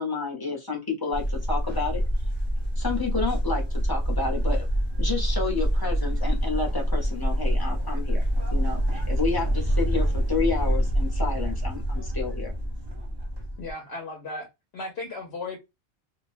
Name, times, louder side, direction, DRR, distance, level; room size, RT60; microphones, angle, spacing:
voice 1, 0.0-2.0 2.8-4.6 5.0-8.2 8.5-12.5, left 4 dB, 25° left, 0.7 m, -30 dB
sound 1, 1.1-13.7, equal, 25° right, 0.7 m, -26 dB
voice 2, 13.6-15.6, left 2 dB, 70° left, 0.8 m, -36 dB
2.4 x 2.1 x 2.4 m
omnidirectional pair, 1.2 m